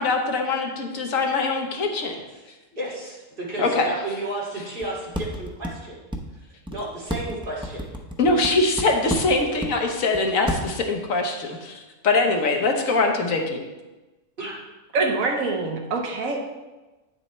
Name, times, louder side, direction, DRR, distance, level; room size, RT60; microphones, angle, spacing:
voice 1, 0.0-2.1 3.6-3.9 8.2-13.6, left 3 dB, 70° left, 3 dB, 1.3 m, -23 dB
voice 2, 2.7-6.0 6.7-7.8 14.4-14.5, right 1 dB, 40° right, -6 dB, 2.3 m, -32 dB
sound 1, 4.8-4.9 5.1-5.7 6.1-6.2 6.7-6.8 7.1-8.5 8.8-9.7 10.1-10.2 10.5-10.7, equal, 5° right, 0.4 m, -29 dB
voice 3, 14.9-16.4, right 3 dB, 75° right, 2 dB, 1.4 m, -24 dB
8.8 x 7.6 x 3.2 m, 1.1 s
omnidirectional pair, 1.5 m